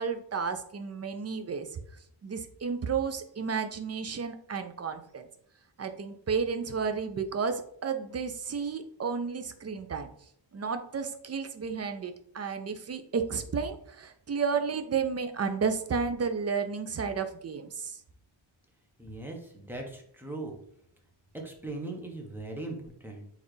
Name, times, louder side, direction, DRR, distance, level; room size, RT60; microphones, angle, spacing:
voice 1, 0.0-1.7 2.2-5.3 5.8-10.1 10.5-18.0, right 5 dB, 35° right, 8 dB, 0.4 m, -32 dB
voice 2, 19.0-20.6 21.4-23.2, right 2 dB, 5° right, 1 dB, 0.9 m, -39 dB
4.3 x 3.4 x 3.1 m, 0.68 s
wide cardioid pair, 120°, 47 cm